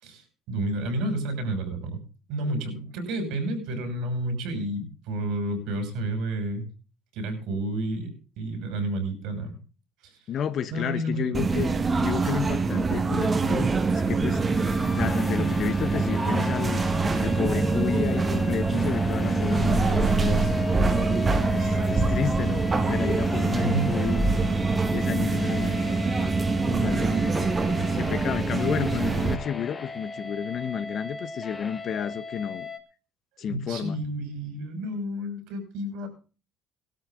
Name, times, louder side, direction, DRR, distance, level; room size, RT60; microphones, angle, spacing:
voice 1, 0.0-2.0 2.3-6.7 7.1-9.6 10.0-10.1 10.7-11.5 23.5-23.9 33.4-36.1, right 1 dB, 75° right, 6.2 m, -30 dB
voice 2, 10.3-11.7 12.0-14.4 15.0-16.8 17.2-20.5 21.5-24.2 24.9-25.8 26.7-27.2 28.0-32.7 33.4-34.0, left 8 dB, 50° left, 1.2 m, -31 dB
sound 1, 11.3-29.4, right 3 dB, 25° right, 1.6 m, -24 dB
sound 2, 14.4-32.8, left 4 dB, 25° left, 1.5 m, -37 dB
17.5 x 13.0 x 3.9 m
supercardioid pair, 100°, 0 cm